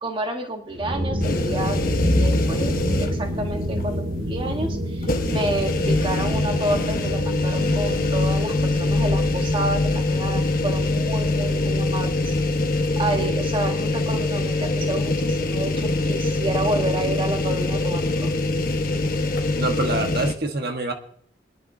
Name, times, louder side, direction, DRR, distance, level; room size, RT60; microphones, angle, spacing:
voice 1, 0.0-1.8 2.2-12.4 13.0-18.3, right 1 dB, 30° right, 4 dB, 1.2 m, -29 dB
sound 1, 0.7-19.5, equal, 75° right, 2.5 m, -32 dB
sound 2, 1.2-3.4 3.8-3.9 5.0-20.3, left 2 dB, 50° left, 1.1 m, -23 dB
voice 2, 19.6-20.9, right 2 dB, 55° right, 4 dB, 1.3 m, -25 dB
25.5 x 10.5 x 2.7 m, 0.62 s
head